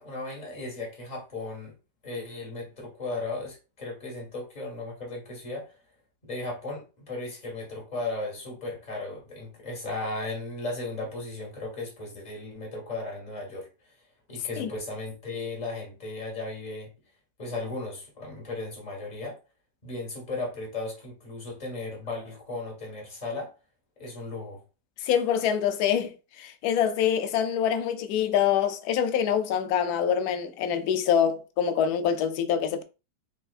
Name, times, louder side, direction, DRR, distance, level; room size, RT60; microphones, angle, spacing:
voice 1, 0.0-1.7 2.0-5.7 6.2-13.9 14.3-16.9 17.4-19.4 19.8-23.5 24.0-24.6, left 2 dB, 25° left, 1.6 m, -36 dB
voice 2, 25.0-26.1 26.4-32.8, left 8 dB, 70° left, 0.9 m, -25 dB
5.6 x 2.6 x 2.4 m
omnidirectional pair, 2.0 m